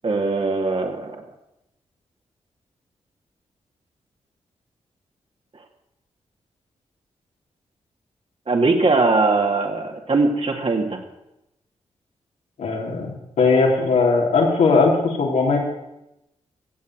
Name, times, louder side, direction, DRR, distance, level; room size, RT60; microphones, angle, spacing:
voice 1, 0.0-1.2 8.5-11.0, right 3 dB, 50° right, 2 dB, 2.6 m, -20 dB
voice 2, 12.6-15.6, left 4 dB, 80° left, -2 dB, 3.6 m, -19 dB
16.0 x 7.6 x 7.6 m, 0.89 s
supercardioid pair, 45°, 13 cm